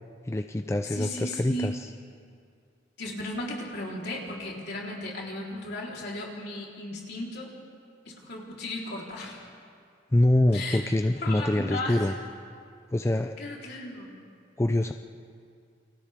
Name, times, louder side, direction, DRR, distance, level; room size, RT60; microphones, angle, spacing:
voice 1, 0.3-1.9 10.1-12.1 12.9-13.3 14.6-14.9, left 1 dB, 15° left, 7 dB, 0.5 m, -25 dB
voice 2, 0.8-1.7 3.0-7.5 8.1-9.5 10.5-10.9 11.2-12.1 13.4-14.1, left 1 dB, 60° left, -3 dB, 4.0 m, -35 dB
29.5 x 24.5 x 3.7 m, 2.3 s
head